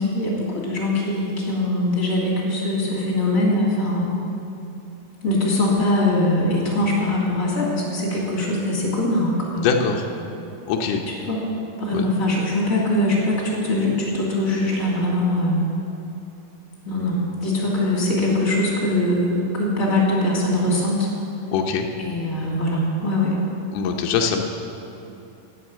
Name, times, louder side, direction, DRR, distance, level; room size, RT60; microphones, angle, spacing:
voice 1, 0.0-4.1 5.2-9.7 11.1-11.4 11.8-15.6 16.8-21.1 22.0-23.4, left 1 dB, 25° left, -4 dB, 2.6 m, -22 dB
voice 2, 9.6-10.0 10.7-11.0 11.9-12.1 21.5-21.9 23.7-24.4, left 6 dB, 75° left, 2 dB, 2.3 m, -22 dB
11.5 x 9.7 x 7.7 m, 2.8 s
omnidirectional pair, 3.9 m